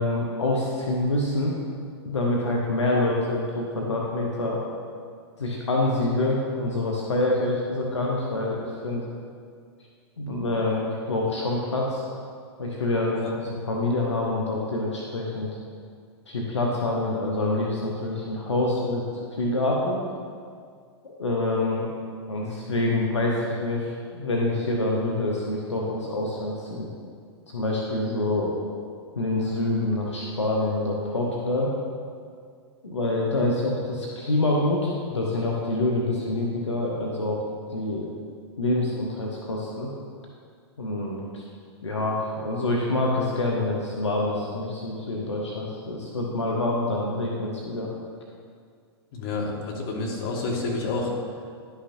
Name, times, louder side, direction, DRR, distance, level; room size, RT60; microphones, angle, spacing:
voice 1, 0.0-1.6 2.0-4.6 5.4-9.1 10.2-12.0 12.6-13.4 13.7-15.5 16.3-19.0 19.3-20.0 21.0-21.9 22.3-26.9 27.5-28.6 29.2-31.7 32.8-37.4 37.7-38.1 38.6-39.9 40.8-41.4 41.8-47.9, left 2 dB, 85° left, -2 dB, 0.9 m, -26 dB
voice 2, 49.1-51.1, left 3 dB, 55° left, -1 dB, 1.7 m, -29 dB
11.0 x 5.8 x 2.7 m, 2.1 s
hypercardioid pair, 105°, 15 cm